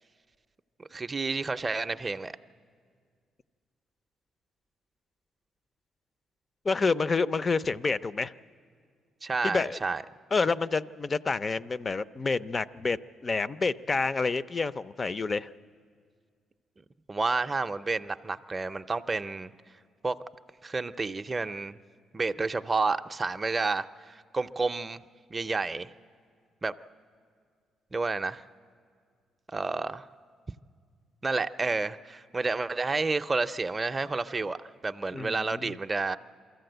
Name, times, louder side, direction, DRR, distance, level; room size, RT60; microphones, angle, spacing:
voice 1, 0.8-2.3 9.2-10.0 17.1-19.5 20.0-20.2 20.6-21.8 22.1-25.0 25.3-25.9 26.6-26.7 27.9-28.4 29.5-30.1 31.2-34.6 34.8-36.2, right 3 dB, 25° right, 10 dB, 0.5 m, -30 dB
voice 2, 6.6-8.3 9.4-9.8 10.3-15.5 35.1-35.7, left 4 dB, 35° left, 16 dB, 0.4 m, -28 dB
23.5 x 14.5 x 7.9 m, 2.1 s
cardioid pair, 90°, 0 cm